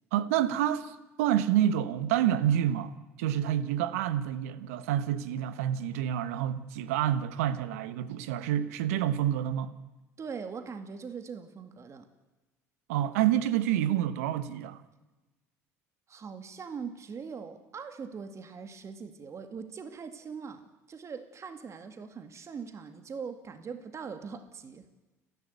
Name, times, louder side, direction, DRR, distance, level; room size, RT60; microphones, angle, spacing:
voice 1, 0.1-2.9 3.2-9.7 12.9-14.8, right 11 dB, 80° right, 1.2 m, -28 dB
voice 2, 10.2-12.1 16.1-24.9, right 6 dB, 40° right, 2.2 m, -41 dB
30.0 x 11.5 x 8.3 m
hypercardioid pair, 70°, 8 cm